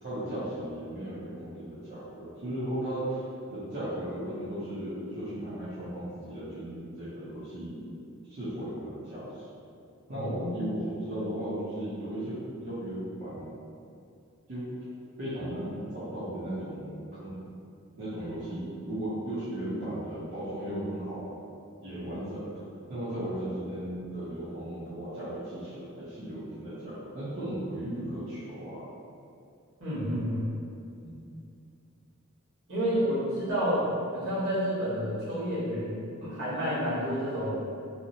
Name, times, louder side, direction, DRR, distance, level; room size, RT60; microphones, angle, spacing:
voice 1, 0.0-3.2 3.5-7.9 8.3-9.5 10.1-13.5 14.5-14.7 15.2-17.4 18.0-21.3 21.8-22.5 22.9-28.9 31.0-31.2, right 1 dB, 55° right, -13 dB, 0.6 m, -36 dB
voice 2, 10.1-10.7 29.8-30.5 32.7-33.9 34.1-37.6, equal, 80° right, -11 dB, 1.3 m, -30 dB
2.7 x 2.1 x 2.7 m, 2.5 s
head